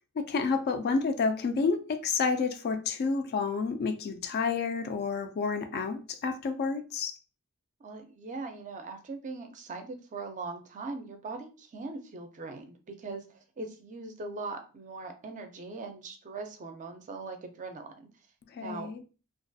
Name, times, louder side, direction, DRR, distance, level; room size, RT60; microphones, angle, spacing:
voice 1, 0.2-7.2 18.5-19.0, left 4 dB, 45° left, 0.3 m, -30 dB
voice 2, 7.8-18.1 18.6-18.9, right 3 dB, 35° right, 0.4 m, -40 dB
2.4 x 2.2 x 2.6 m
head